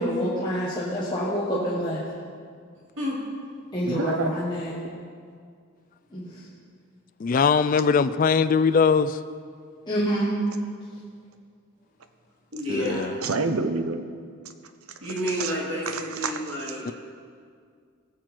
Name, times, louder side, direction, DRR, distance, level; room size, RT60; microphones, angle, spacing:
voice 1, 0.0-2.0 3.7-4.8 6.1-6.4 9.9-10.3, equal, 20° left, -8 dB, 1.4 m, -27 dB
voice 2, 3.8-4.3 13.2-14.0 15.4-15.5 15.9-16.4, right 3 dB, 80° right, 8 dB, 0.8 m, -27 dB
voice 3, 7.2-9.2 12.7-13.1 16.9-17.0, left 5 dB, 40° left, 13 dB, 0.3 m, -21 dB
voice 4, 12.5-13.1 15.0-16.9, equal, 60° right, -6 dB, 3.0 m, -30 dB
17.5 x 7.7 x 4.5 m, 2.1 s
head